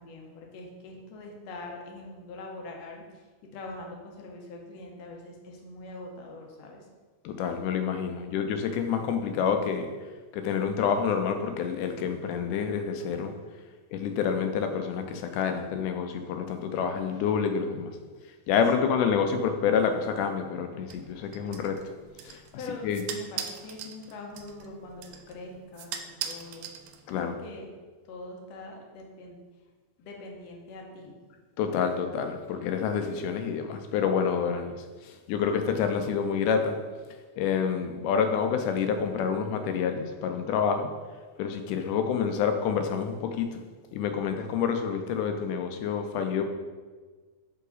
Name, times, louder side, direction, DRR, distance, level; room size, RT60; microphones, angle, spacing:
voice 1, 0.0-3.0 3.5-6.8 18.8-19.0 22.6-26.8 27.2-27.7 28.1-29.4 30.0-31.3, left 2 dB, 70° left, 1 dB, 1.8 m, -43 dB
voice 2, 7.3-9.9 10.3-13.3 13.9-17.9 18.5-21.8 22.3-22.4 22.8-23.0 27.1-27.4 31.6-36.8 37.4-40.9 41.4-43.6 43.9-46.4, left 6 dB, 85° left, 6 dB, 2.1 m, -28 dB
sound 1, 20.9-27.3, right 8 dB, 80° right, 1.9 m, -41 dB
5.5 x 4.8 x 4.0 m, 1.4 s
omnidirectional pair, 3.6 m